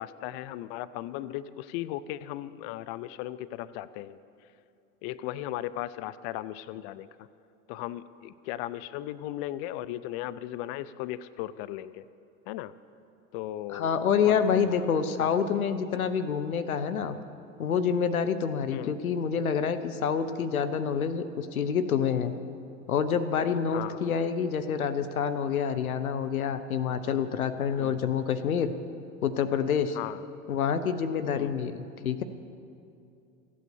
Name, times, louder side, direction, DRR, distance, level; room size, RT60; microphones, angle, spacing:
voice 1, 0.0-4.2 5.0-7.1 7.7-12.0 12.5-12.7 13.3-13.9 14.2-14.9 15.2-15.4 18.7-19.0 23.7-24.1 27.8-28.0 29.9-30.3 31.3-31.6, left 14 dB, 50° left, 16 dB, 0.5 m, -37 dB
voice 2, 13.7-17.2 17.6-22.3 22.9-28.7 29.2-30.0 30.5-32.2, left 7 dB, 85° left, 11 dB, 0.8 m, -27 dB
15.0 x 8.4 x 7.1 m, 2.6 s
hypercardioid pair, 85°, 41 cm